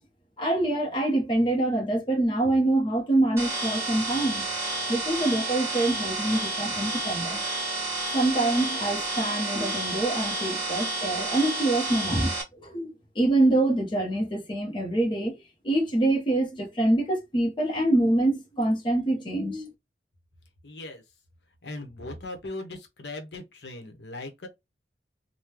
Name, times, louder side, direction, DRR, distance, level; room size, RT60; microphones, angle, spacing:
voice 1, 0.4-4.4 4.9-7.4 8.1-15.4 15.6-19.7, right 1 dB, 30° left, 0.9 m, -25 dB
sound 1, 3.4-12.4, right 2 dB, 15° right, 1.4 m, -30 dB
voice 2, 20.6-21.0 21.6-24.5, left 2 dB, 70° left, 1.0 m, -39 dB
3.6 x 2.2 x 2.9 m
head